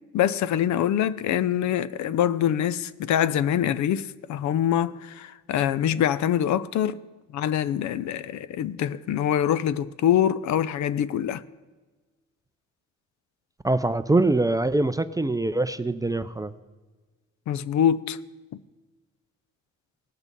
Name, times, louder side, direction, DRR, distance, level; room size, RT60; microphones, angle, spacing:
voice 1, 0.1-7.0 7.3-11.4 17.5-18.2 18.5-18.6, left 10 dB, 70° left, 0.5 m, -24 dB
voice 2, 13.6-16.5, right 2 dB, 10° right, 0.4 m, -23 dB
18.0 x 6.1 x 5.3 m
cardioid pair, 90°, 30 cm